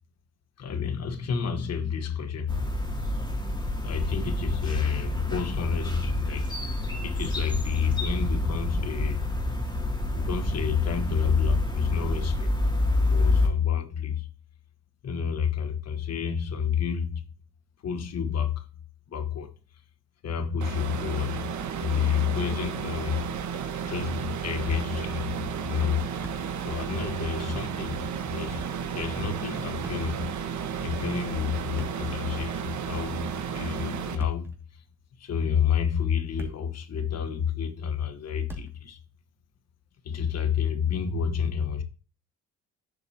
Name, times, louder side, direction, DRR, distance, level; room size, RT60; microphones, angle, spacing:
voice 1, 0.6-2.6 3.8-6.5 7.0-9.2 10.1-12.5 13.1-14.3 15.0-17.2 17.8-18.7 19.1-19.5 20.2-21.5 21.8-23.2 23.8-26.1 26.6-28.7 28.9-30.5 30.8-34.8 35.2-39.0 40.0-41.8, left 7 dB, 55° left, 1.5 m, -29 dB
sound 1, 2.5-13.5, left 1 dB, 15° left, 2.9 m, -28 dB
sound 2, 20.6-34.2, right 7 dB, 70° right, 1.4 m, -33 dB
Thump thud, 24.7-25.2 25.5-25.6 26.0-26.8 27.0-27.2 28.2-28.8 29.8-30.4 31.6-32.6 34.0-34.6 35.4-35.5 36.1-36.8 37.1-37.2 38.5-38.9, right 1 dB, 10° right, 2.4 m, -42 dB
11.5 x 6.7 x 2.9 m
cardioid pair, 90°, 30 cm